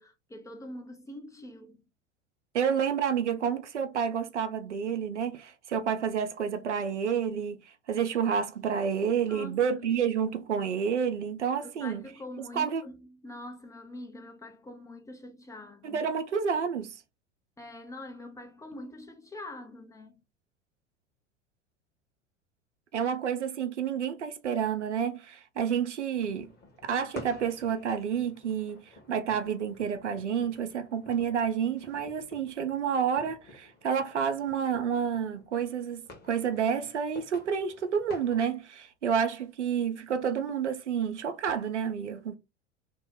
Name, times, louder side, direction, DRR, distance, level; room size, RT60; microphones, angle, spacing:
voice 1, 0.0-1.8 9.3-9.7 11.6-16.0 17.6-20.2, left 1 dB, 10° left, 0.5 m, -44 dB
voice 2, 2.5-7.6 7.9-12.0 12.5-12.8 15.8-17.0 22.9-26.5 26.8-42.3, right 7 dB, 80° right, 0.7 m, -29 dB
sound 1, 26.1-38.5, left 2 dB, 30° left, 1.2 m, -51 dB
2.9 x 2.1 x 3.8 m
figure-of-eight pair, 80°, 35 cm